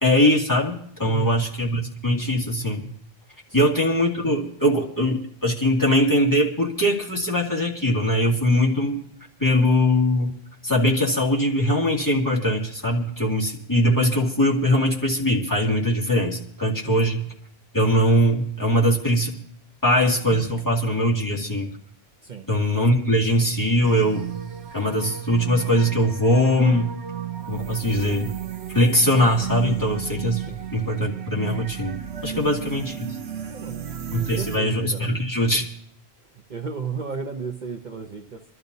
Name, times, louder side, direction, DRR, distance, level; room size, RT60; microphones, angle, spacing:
voice 1, 0.0-2.9 3.5-9.0 9.4-10.3 10.6-17.3 17.7-19.4 19.8-21.7 22.5-24.3 24.7-27.0 27.5-28.3 28.7-30.5 30.7-33.1 34.1-35.7, equal, 20° left, -3 dB, 2.4 m, -21 dB
voice 2, 1.0-1.4 3.5-3.7 16.8-17.1 22.2-22.5 30.3-30.6 32.3-32.5 33.5-33.8 34.2-35.1 36.5-38.4, right 5 dB, 50° right, 3 dB, 1.0 m, -34 dB
sound 1, 23.8-34.6, right 9 dB, 85° right, 1.0 m, -33 dB
26.5 x 12.5 x 2.7 m, 0.70 s
omnidirectional pair, 1.1 m